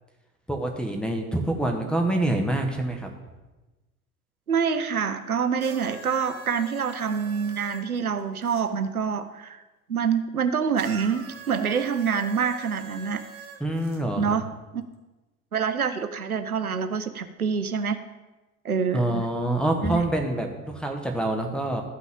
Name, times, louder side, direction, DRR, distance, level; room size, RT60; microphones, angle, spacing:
voice 1, 0.5-3.1 13.6-14.4 18.9-21.8, right 1 dB, ahead, 3 dB, 1.2 m, -26 dB
voice 2, 4.5-9.6 9.9-13.2 14.2-14.4 14.7-14.8 15.5-18.0 18.6-19.3 19.8-20.0, right 6 dB, 90° right, 10 dB, 0.5 m, -26 dB
sound 1, 5.6-8.6 10.7-14.0 14.9-15.0, right 5 dB, 60° right, 1.8 m, -43 dB
13.5 x 5.9 x 3.7 m, 1.1 s
figure-of-eight pair, 70°, 42 cm